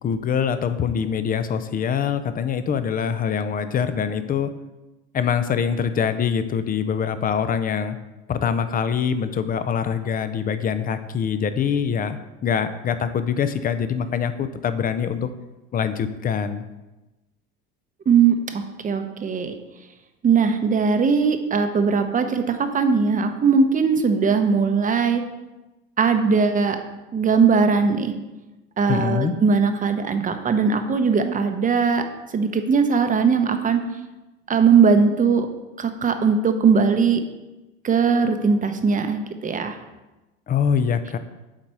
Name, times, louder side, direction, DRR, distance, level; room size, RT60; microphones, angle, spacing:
voice 1, 0.0-4.5 5.1-8.0 8.3-15.3 15.7-16.6 28.9-29.3 40.5-41.2, left 7 dB, 30° left, 11 dB, 0.5 m, -24 dB
voice 2, 18.1-19.5 20.2-25.2 26.0-26.8 27.1-28.1 28.8-32.0 32.3-33.8 34.5-35.5 35.8-37.2 37.8-39.8, right 5 dB, 25° right, 7 dB, 0.8 m, -19 dB
7.5 x 4.1 x 4.7 m, 1.1 s
supercardioid pair, 95°, 30 cm